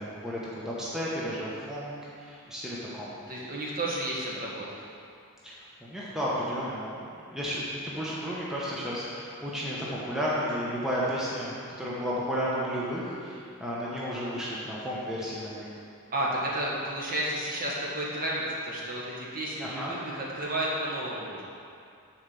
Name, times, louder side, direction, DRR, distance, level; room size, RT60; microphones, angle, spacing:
voice 1, 0.0-1.9 2.2-3.1 5.4-6.9 7.3-15.7 19.6-19.9, equal, ahead, -8 dB, 1.0 m, -33 dB
voice 2, 3.3-4.6 16.1-21.4, right 1 dB, 40° right, -5 dB, 1.6 m, -32 dB
7.1 x 4.8 x 7.0 m, 2.4 s
head